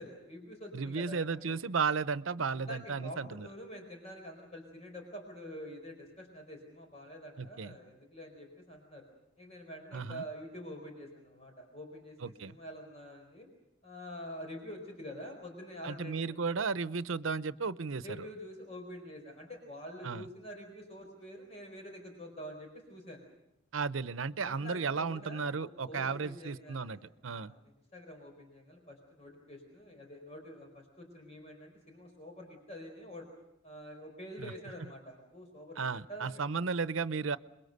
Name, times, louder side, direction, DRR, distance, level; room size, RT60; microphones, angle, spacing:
voice 1, 0.0-1.6 2.5-9.0 9.4-13.5 13.8-16.6 18.0-23.2 24.4-27.5 27.9-33.3 33.6-36.4, equal, 35° left, 3 dB, 4.7 m, -47 dB
voice 2, 0.7-3.5 7.4-7.7 9.9-10.2 12.2-12.5 15.8-18.3 20.0-20.3 23.7-27.5 34.4-34.5 35.8-37.4, right 5 dB, 85° right, 14 dB, 0.8 m, -34 dB
28.0 x 22.0 x 6.7 m, 0.86 s
head